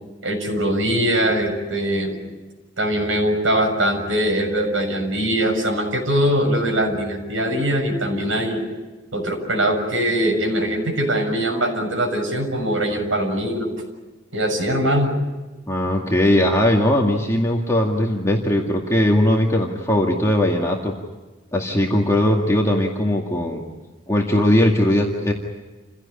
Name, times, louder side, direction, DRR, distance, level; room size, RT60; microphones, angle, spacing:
voice 1, 0.2-2.2 2.8-8.6 9.1-13.7 14.3-15.1, right 1 dB, 85° right, 2 dB, 6.7 m, -22 dB
voice 2, 15.7-20.9 21.5-23.6 24.1-25.3, left 1 dB, 15° left, -1 dB, 2.1 m, -19 dB
29.0 x 16.5 x 10.0 m, 1.2 s
head